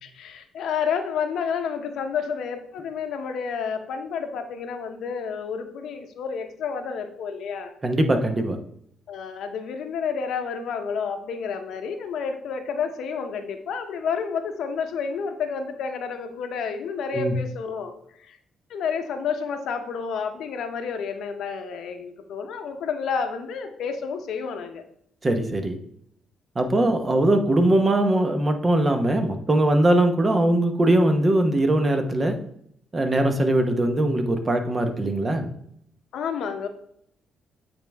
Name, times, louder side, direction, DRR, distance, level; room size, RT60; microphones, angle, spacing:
voice 1, 0.0-7.7 9.1-17.9 18.2-18.4 18.7-24.8 36.1-36.7, left 6 dB, 75° left, 6 dB, 0.8 m, -30 dB
voice 2, 7.8-8.6 17.1-17.3 25.2-25.8 26.5-32.4 32.9-35.5, right 1 dB, 30° right, 6 dB, 0.9 m, -21 dB
8.5 x 3.5 x 3.4 m, 0.69 s
cardioid pair, 90°, 0 cm